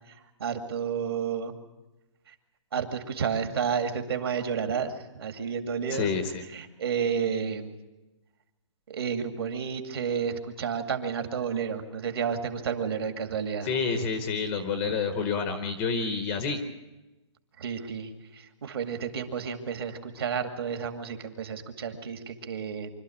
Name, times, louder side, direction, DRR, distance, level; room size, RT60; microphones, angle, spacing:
voice 1, 0.4-1.6 2.7-6.1 6.5-7.7 8.9-13.7 17.6-22.9, right 6 dB, 50° right, 6 dB, 2.2 m, -31 dB
voice 2, 5.9-6.5 13.6-16.6, left 5 dB, 10° left, 7 dB, 0.8 m, -29 dB
25.5 x 13.0 x 8.6 m, 1.1 s
hypercardioid pair, 175°, 16 cm